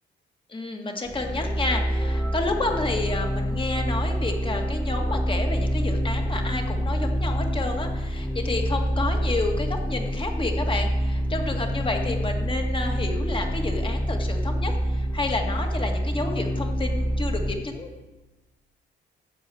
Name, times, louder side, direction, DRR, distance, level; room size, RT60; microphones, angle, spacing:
voice 1, 0.5-17.9, left 2 dB, 25° left, 3 dB, 2.0 m, -30 dB
sound 1, 1.1-17.5, equal, 10° left, 1.7 m, -26 dB
13.5 x 4.9 x 8.4 m, 1.1 s
cardioid pair, 90°, 20 cm